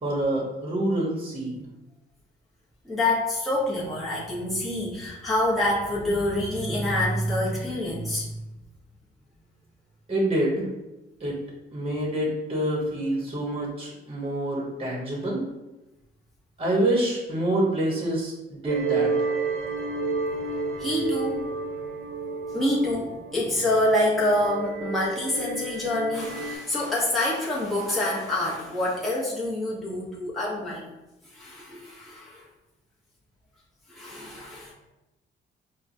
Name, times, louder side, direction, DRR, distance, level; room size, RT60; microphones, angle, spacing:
voice 1, 0.0-1.7 10.1-10.6 11.2-11.3 11.7-15.4 16.6-19.3, right 1 dB, 30° right, -3 dB, 1.1 m, -27 dB
voice 2, 2.8-8.4 20.8-21.5 22.5-30.9 31.2-32.5 33.9-34.7, left 1 dB, ahead, -7 dB, 1.0 m, -26 dB
sound 1, 18.7-26.6, right 4 dB, 85° right, 0.9 m, -31 dB
4.5 x 2.3 x 2.6 m, 0.99 s
cardioid pair, 90°, 20 cm